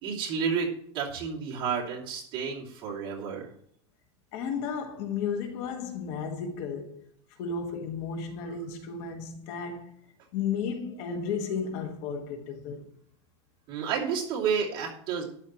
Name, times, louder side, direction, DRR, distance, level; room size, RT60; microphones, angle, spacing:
voice 1, 0.0-3.5 13.7-15.2, right 6 dB, 35° right, 3.0 m, -31 dB
voice 2, 4.3-7.0 7.4-9.9 10.3-12.8, left 6 dB, 45° left, 1.7 m, -33 dB
12.5 x 10.0 x 3.2 m
supercardioid pair, 165°, 15 cm